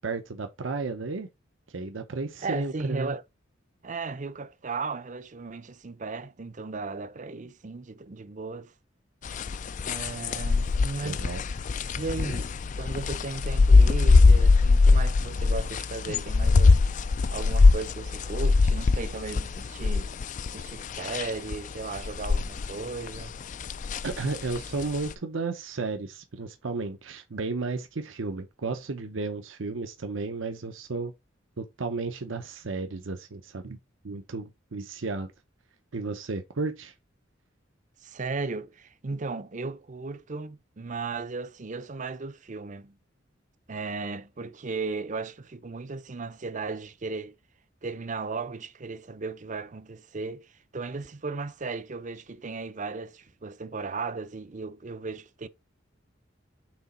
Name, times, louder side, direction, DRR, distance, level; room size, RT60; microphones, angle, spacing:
voice 1, 0.0-1.3 1.7-3.2 11.0-11.4 24.0-31.1 31.6-33.8 34.0-35.3 35.9-36.9, right 3 dB, 75° right, 0.7 m, -33 dB
voice 2, 2.4-3.2 3.8-8.7 9.8-11.2 12.0-16.8 17.3-20.1 20.5-23.4 38.0-43.0 43.7-47.3 47.8-55.5, right 4 dB, 40° right, 0.6 m, -36 dB
sound 1, 9.2-22.7 23.0-25.1, left 3 dB, 40° left, 0.3 m, -22 dB
6.1 x 3.9 x 4.1 m
head